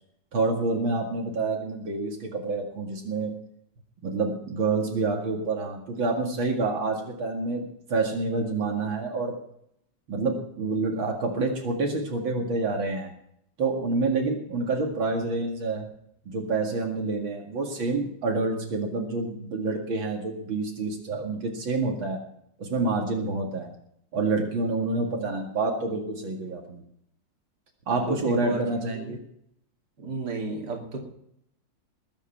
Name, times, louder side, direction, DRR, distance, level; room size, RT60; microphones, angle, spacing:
voice 1, 0.3-3.3 4.0-9.4 10.1-13.1 13.6-15.9 16.3-22.2 22.6-23.7 24.1-26.8 27.9-29.2, right 3 dB, 80° right, 1 dB, 2.9 m, -28 dB
voice 2, 28.1-28.6 28.9-29.2 30.0-31.0, right 3 dB, 55° right, 0 dB, 3.2 m, -33 dB
21.0 x 9.0 x 5.8 m, 0.73 s
omnidirectional pair, 2.2 m